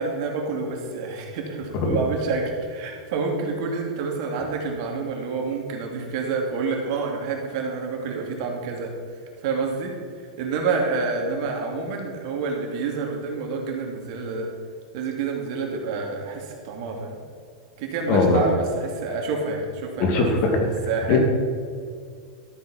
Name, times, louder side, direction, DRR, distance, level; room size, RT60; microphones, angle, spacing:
voice 1, 0.0-8.9 9.4-9.9 10.4-14.5 14.9-17.2 17.8-20.6 20.9-21.2, right 4 dB, 55° right, 1 dB, 2.8 m, -28 dB
voice 2, 18.1-18.4 20.0-20.5 21.1-21.2, left 3 dB, 45° left, 2 dB, 2.5 m, -20 dB
13.5 x 8.8 x 4.5 m, 2.2 s
hypercardioid pair, 110°, 3 cm